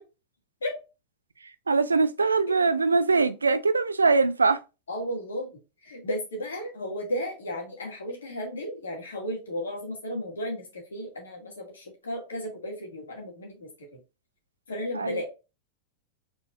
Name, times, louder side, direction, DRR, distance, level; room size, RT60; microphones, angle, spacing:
voice 1, 1.7-4.6 14.9-15.2, right 4 dB, 75° right, 0.4 m, -22 dB
voice 2, 4.9-5.5 5.8-14.0 14.7-15.2, equal, 70° left, 2.1 m, -34 dB
4.5 x 4.2 x 2.5 m
figure-of-eight pair, 90°, 0 cm